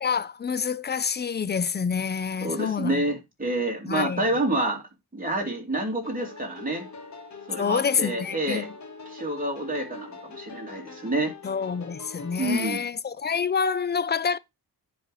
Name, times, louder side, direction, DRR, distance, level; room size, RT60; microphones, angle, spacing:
voice 1, 0.0-3.0 3.9-4.3 7.6-8.7 11.4-14.4, left 6 dB, 30° left, 0.4 m, -27 dB
voice 2, 2.4-4.8 5.1-6.8 7.5-8.7 9.1-11.3 12.4-12.8, right 1 dB, 20° right, 2.6 m, -28 dB
sound 1, 6.0-12.7, left 4 dB, 45° left, 1.3 m, -43 dB
10.0 x 4.1 x 4.8 m
wide cardioid pair, 150°, 40 cm